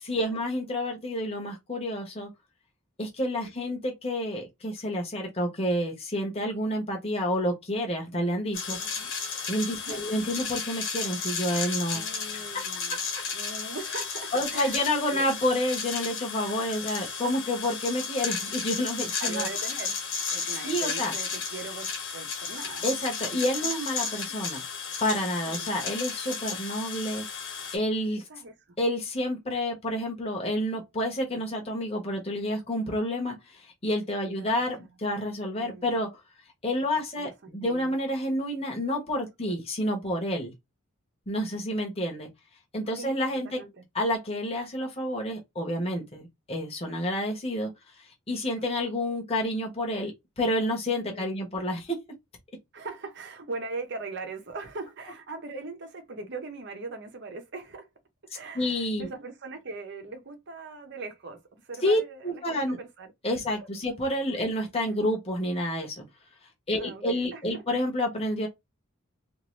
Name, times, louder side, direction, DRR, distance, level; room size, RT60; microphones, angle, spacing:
voice 1, 0.1-2.3 3.0-8.8 9.5-12.0 12.3-13.0 14.3-19.5 20.6-21.1 22.8-24.6 25.0-27.2 27.7-28.2 28.8-36.1 36.6-40.5 41.3-42.3 42.7-43.6 43.9-47.7 48.3-50.1 50.4-52.0 58.5-59.1 61.8-62.8 63.2-66.0 66.7-68.5, left 1 dB, 30° left, 1.0 m, -29 dB
sound 1, 8.5-27.8, left 5 dB, 60° left, 1.3 m, -33 dB
voice 2, 8.8-9.1 9.8-10.5 12.0-13.0 13.3-15.3 19.2-20.0 20.3-22.9 23.4-23.7 24.0-24.1 25.5-25.7 28.3-28.5 34.4-34.5 35.6-36.1 37.2-38.0 39.4-39.5 41.5-41.9 43.0-43.1 43.4-43.8 48.4-48.7 51.1-51.4 52.7-57.9 58.3-63.1 63.6-63.7 66.7-67.6, right 3 dB, 55° right, 0.8 m, -41 dB
2.6 x 2.6 x 3.0 m
head